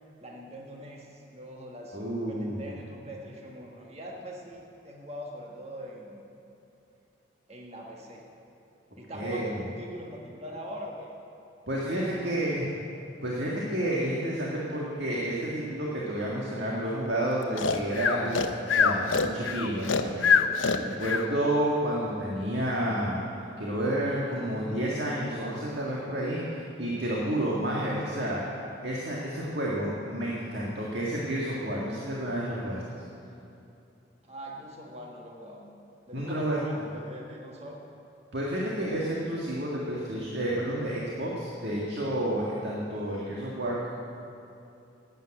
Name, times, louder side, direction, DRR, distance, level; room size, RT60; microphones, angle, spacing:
voice 1, 0.2-6.2 7.5-8.3 9.0-11.1 12.0-12.7 34.2-35.6 36.1-37.8, equal, 35° right, -1 dB, 1.5 m, -42 dB
voice 2, 1.9-2.7 9.1-9.7 11.7-12.7 13.2-28.4 28.8-32.8 36.1-36.6 38.3-43.9, right 1 dB, 60° right, -5 dB, 1.9 m, -30 dB
Breathing, 17.6-21.3, left 6 dB, 90° left, 0.8 m, -24 dB
12.0 x 9.1 x 8.9 m, 2.7 s
head